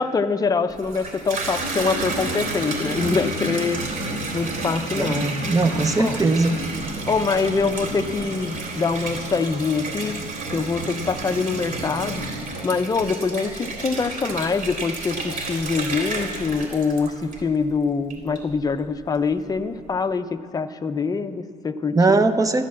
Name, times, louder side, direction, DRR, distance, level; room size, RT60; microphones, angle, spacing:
voice 1, 0.0-3.8 4.3-5.2 6.0-6.2 7.1-10.3 10.5-12.2 12.6-22.3, left 4 dB, 20° left, 9 dB, 0.7 m, -24 dB
Water tap faucet / Bathtub (filling or washing), 0.7-17.6 18.1-18.7, right 2 dB, 55° right, 3.4 m, -30 dB
voice 2, 5.0-6.5 21.9-22.7, right 3 dB, 20° right, 9 dB, 0.9 m, -20 dB
12.0 x 11.5 x 7.4 m, 2.5 s
cardioid pair, 110°, 17 cm